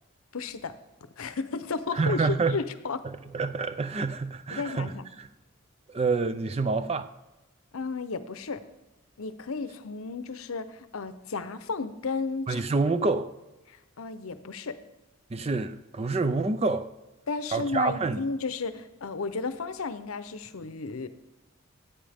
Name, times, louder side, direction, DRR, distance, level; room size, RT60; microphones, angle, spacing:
voice 1, 0.3-0.7 1.2-3.0 4.5-5.0 7.7-8.6 9.2-12.6 13.7-14.8 17.3-21.1, left 4 dB, 85° left, 0.7 m, -33 dB
voice 2, 1.9-2.6 3.0-4.9 5.2-5.3 5.9-7.1 12.5-13.3 15.3-16.9 17.5-18.2, right 3 dB, 30° right, 0.4 m, -27 dB
14.5 x 8.9 x 3.5 m
head